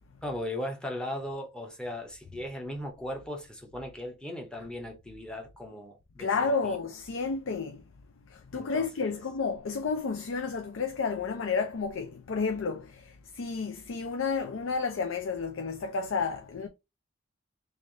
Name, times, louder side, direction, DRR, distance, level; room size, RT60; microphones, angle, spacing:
voice 1, 0.2-6.8 8.5-9.2, left 1 dB, 5° left, 0.8 m, -38 dB
voice 2, 6.2-7.8 8.3-16.7, left 4 dB, 75° left, 0.5 m, -31 dB
3.3 x 2.6 x 3.8 m
head